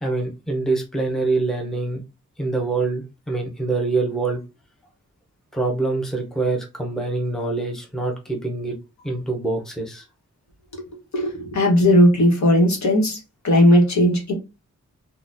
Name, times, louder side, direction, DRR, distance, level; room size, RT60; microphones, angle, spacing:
voice 1, 0.0-2.0 2.4-4.4 5.5-8.7 9.0-10.0, right 3 dB, ahead, 0.7 m, -25 dB
voice 2, 11.1-13.2 13.4-14.3, left 1 dB, 70° left, 1.1 m, -16 dB
3.8 x 2.2 x 2.5 m
wide cardioid pair, 115°, 30 cm